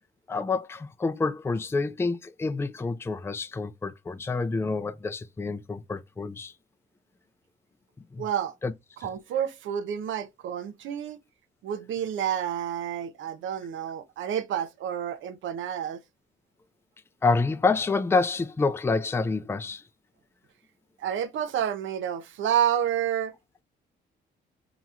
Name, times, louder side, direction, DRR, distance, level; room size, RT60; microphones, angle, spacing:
voice 1, 0.3-6.5 8.1-8.2 8.6-8.7 17.2-19.8, left 3 dB, 10° left, 0.4 m, -27 dB
voice 2, 8.2-8.5 9.0-11.2 11.6-16.0 21.0-23.3, right 9 dB, 75° right, 0.7 m, -29 dB
5.3 x 2.9 x 2.4 m
cardioid pair, 90°, 20 cm